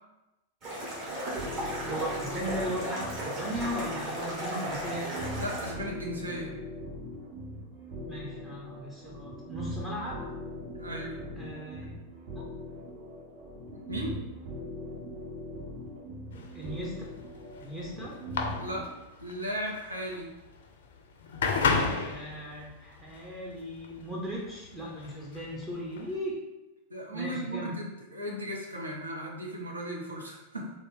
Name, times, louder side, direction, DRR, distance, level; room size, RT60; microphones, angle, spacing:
sound 1, 0.6-5.7, right 1 dB, 40° right, 1.4 m, -35 dB
sound 2, 1.4-18.8, equal, 55° right, 1.5 m, -41 dB
voice 1, 1.8-5.1 8.1-10.3 11.4-11.9 12.3-12.5 16.5-17.0 17.6-18.2 22.0-26.4 27.1-27.7, equal, 15° right, -4 dB, 0.6 m, -37 dB
voice 2, 5.4-6.5 10.8-11.2 13.7-14.2 18.6-18.9 19.2-20.3 26.9-30.7, equal, 80° right, -1 dB, 0.6 m, -36 dB
sound 3, 16.3-26.2, left 4 dB, 60° left, 0.4 m, -33 dB
3.7 x 2.1 x 3.5 m, 1.0 s
figure-of-eight pair, 90°, 0 cm